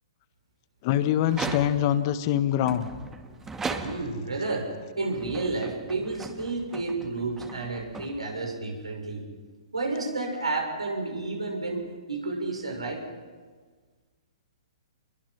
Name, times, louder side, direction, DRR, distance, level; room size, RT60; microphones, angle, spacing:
voice 1, 0.8-2.9, left 11 dB, 40° left, 11 dB, 1.5 m, -24 dB
sound 1, 1.2-2.1 2.6-4.3 5.0-8.6, right 4 dB, 15° right, 1.9 m, -38 dB
voice 2, 3.8-9.2 9.7-13.0, right 3 dB, 90° right, 1 dB, 6.4 m, -31 dB
28.5 x 22.5 x 5.9 m, 1.5 s
figure-of-eight pair, 120°, 3 cm